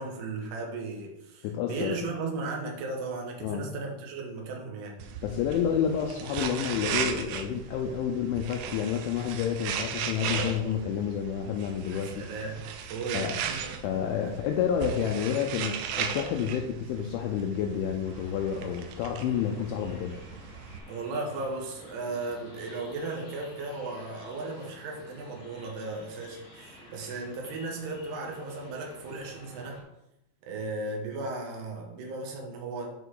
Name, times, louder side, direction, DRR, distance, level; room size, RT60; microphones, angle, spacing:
voice 1, 0.0-5.0 11.9-13.8 20.9-29.8 30.5-32.9, right 3 dB, 65° right, 0 dB, 3.0 m, -36 dB
voice 2, 1.4-2.0 3.4-3.7 5.2-12.3 13.1-13.3 13.8-20.2, left 8 dB, 85° left, 3 dB, 2.8 m, -29 dB
sound 1, 5.0-20.8, right 7 dB, 85° right, 2.7 m, -37 dB
sound 2, 18.0-29.8, left 1 dB, 60° left, 0.9 m, -51 dB
8.5 x 5.8 x 3.8 m, 0.87 s
omnidirectional pair, 6.0 m